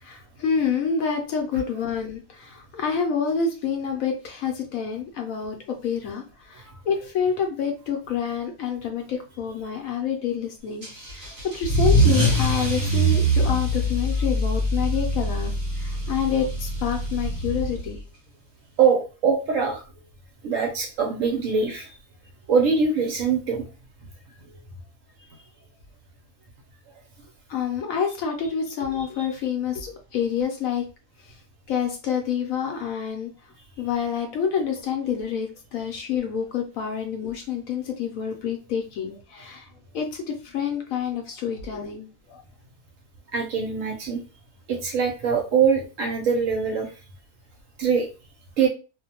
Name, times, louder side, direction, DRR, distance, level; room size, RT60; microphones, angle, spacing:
voice 1, 0.0-18.0 27.5-30.9 31.3-31.4 31.7-33.3 33.8-42.4, left 7 dB, 70° left, 3 dB, 0.9 m, -28 dB
Car / Engine starting / Accelerating revving vroom, 10.8-18.0, right 1 dB, 30° right, 1.1 m, -23 dB
voice 2, 18.8-19.8 20.4-22.0 22.5-23.7 43.3-44.2 44.7-46.9 47.8-48.1 48.6-48.7, right 6 dB, 70° right, 2 dB, 0.8 m, -23 dB
2.5 x 2.1 x 2.8 m, 0.33 s
omnidirectional pair, 1.7 m